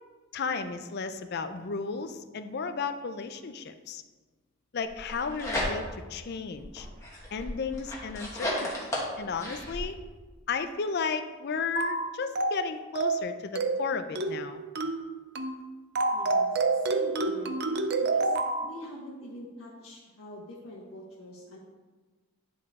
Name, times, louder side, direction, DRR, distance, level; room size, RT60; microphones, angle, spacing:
voice 1, 0.3-4.0 4.7-6.9 7.3-8.9 9.2-10.0 10.5-14.6, left 5 dB, 45° left, 9 dB, 0.4 m, -34 dB
sound 1, 4.9-6.1 6.6-9.8, left 1 dB, 15° left, 1.3 m, -34 dB
sound 2, 11.8-12.0 12.4-12.6 13.0-13.2 13.6-13.8 14.2-14.4 14.8-15.0 15.4-15.6 16.0-18.6, right 3 dB, 45° right, 0.5 m, -27 dB
voice 2, 16.1-17.5 18.0-18.3 18.6-21.6, equal, 80° left, -5 dB, 1.3 m, -45 dB
10.0 x 4.6 x 3.6 m, 1.3 s
head